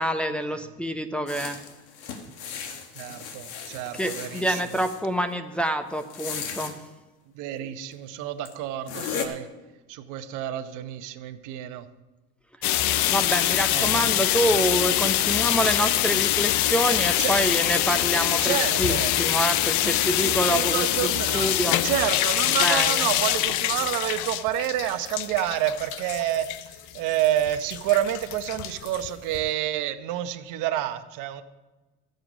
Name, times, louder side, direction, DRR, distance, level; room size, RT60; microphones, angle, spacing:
voice 1, 0.0-1.6 3.9-6.8 13.1-21.8 22.5-23.1, right 1 dB, 5° left, 5 dB, 0.8 m, -27 dB
sound 1, 1.3-5.0 6.0-6.7 7.9-8.0 8.5-8.6 8.9-9.3, left 7 dB, 75° left, 1.5 m, -36 dB
voice 2, 2.9-4.6 7.3-9.5 9.9-11.9 13.7-13.9 17.2-17.3 18.4-19.1 19.8-31.4, right 12 dB, 60° right, 10 dB, 0.9 m, -29 dB
sound 2, 12.6-29.5, left 14 dB, 60° left, 0.6 m, -24 dB
13.5 x 7.9 x 5.1 m, 1.1 s
supercardioid pair, 100°, 34 cm